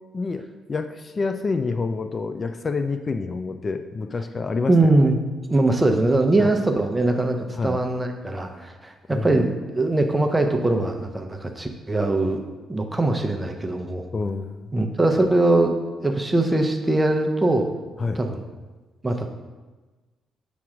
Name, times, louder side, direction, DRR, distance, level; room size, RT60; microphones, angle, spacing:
voice 1, 0.1-4.7 6.4-6.5 7.5-7.9 9.1-9.4 14.1-14.7 18.0-18.2, left 4 dB, 40° left, 8 dB, 0.3 m, -28 dB
voice 2, 4.7-5.2 5.5-12.4 12.7-14.0 14.7-15.8 16.0-17.7 18.2-18.4 19.0-19.3, right 2 dB, 15° right, 5 dB, 0.7 m, -21 dB
7.1 x 3.1 x 4.9 m, 1.3 s
cardioid pair, 75°, 0 cm